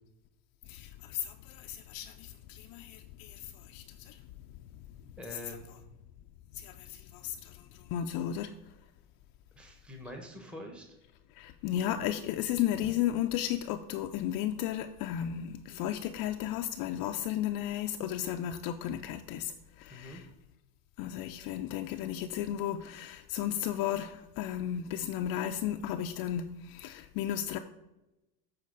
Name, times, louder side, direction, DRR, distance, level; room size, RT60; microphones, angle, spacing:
voice 1, 0.7-4.2 6.5-8.5 11.3-20.3 21.0-27.6, left 11 dB, 45° left, 0.5 m, -34 dB
voice 2, 5.2-5.6 9.6-10.9 19.9-20.2, left 1 dB, ahead, 1.0 m, -45 dB
8.3 x 4.4 x 6.5 m
supercardioid pair, 120°, 49 cm